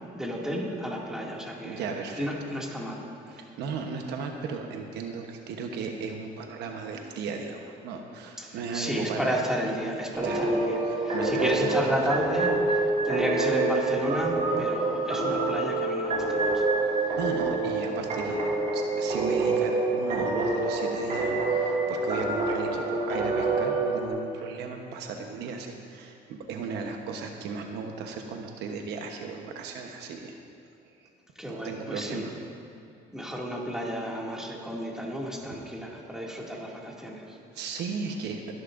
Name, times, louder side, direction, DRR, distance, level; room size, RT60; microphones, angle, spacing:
voice 1, 0.0-1.8 2.1-3.0 3.3-3.4 8.4-16.6 31.4-32.3 33.1-37.4, equal, 5° right, -3 dB, 2.3 m, -32 dB
voice 2, 1.6-2.3 3.3-9.4 10.2-10.5 10.8-11.8 17.2-30.3 31.0-31.1 31.5-32.3 37.5-38.4, right 5 dB, 85° right, 3 dB, 1.1 m, -36 dB
sound 1, 10.1-24.1, right 3 dB, 45° right, 2.8 m, -27 dB
23.0 x 10.5 x 2.6 m, 2.4 s
cardioid pair, 110°, 17 cm